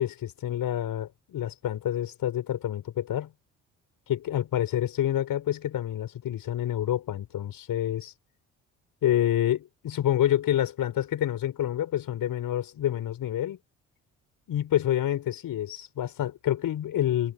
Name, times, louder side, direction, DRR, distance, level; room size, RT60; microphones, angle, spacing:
voice 1, 0.0-3.3 4.1-8.1 9.0-13.6 14.5-17.3, left 11 dB, 65° left, 4.9 m, -28 dB
hypercardioid pair, 55°, 36 cm